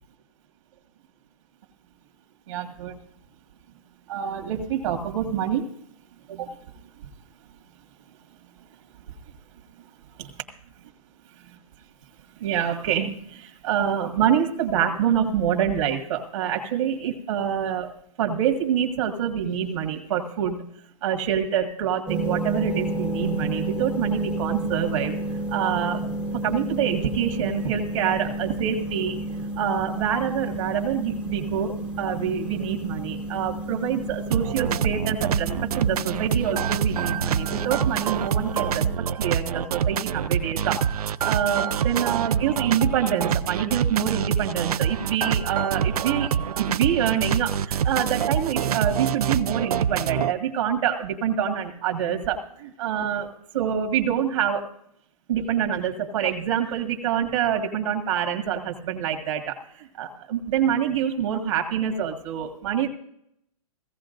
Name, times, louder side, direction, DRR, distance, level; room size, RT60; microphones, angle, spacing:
voice 1, 2.5-3.0 4.1-5.7 6.3-6.6 7.0-7.1 10.2-10.3 11.4-11.6 12.4-20.7 21.0-26.1 26.4-29.2 29.6-38.9 39.2-46.4 46.7-53.3 53.5-54.7 55.3-62.9, right 9 dB, 55° right, 4 dB, 1.8 m, -26 dB
sound 1, 22.1-39.0, right 2 dB, 5° right, 0.6 m, -31 dB
sound 2, 34.3-50.3, right 8 dB, 80° right, 0.6 m, -26 dB
17.0 x 16.0 x 2.6 m, 0.72 s
hypercardioid pair, 165°, 19 cm